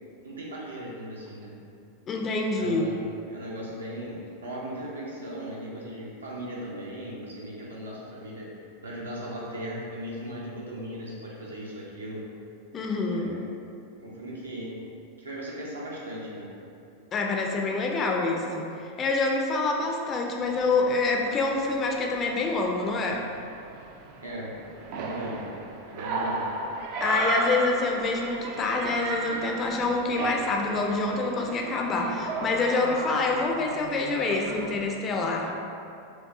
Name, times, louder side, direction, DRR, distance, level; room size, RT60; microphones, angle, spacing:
voice 1, 0.2-1.6 2.5-3.0 3.3-8.5 8.8-12.3 13.1-13.4 14.0-14.8 15.2-16.5 24.2-24.6 24.9-25.4 25.9-26.5, equal, 75° right, -5 dB, 0.7 m, -37 dB
voice 2, 2.1-2.9 12.7-13.3 17.1-23.3 27.0-35.5, left 3 dB, 25° left, 1 dB, 0.4 m, -26 dB
sound 1, 20.4-34.8, right 3 dB, 45° right, 0.3 m, -35 dB
4.6 x 2.3 x 2.7 m, 2.6 s
figure-of-eight pair, 90°, 0 cm